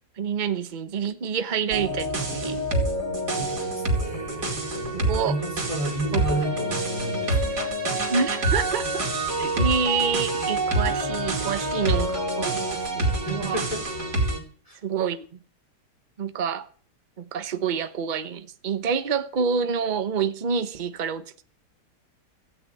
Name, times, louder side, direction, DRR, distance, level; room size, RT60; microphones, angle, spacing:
voice 1, 0.2-2.6 4.9-5.4 6.1-6.2 8.1-9.1 9.4-13.6 14.8-15.4 16.2-16.7 17.2-21.4, right 6 dB, 35° right, 0.9 m, -27 dB
sound 1, 1.7-14.4, right 2 dB, 80° right, 3.4 m, -27 dB
voice 2, 3.3-7.6 13.3-13.8 14.6-14.8, right 1 dB, 20° left, 4.7 m, -32 dB
15.0 x 6.3 x 9.1 m
omnidirectional pair, 1.8 m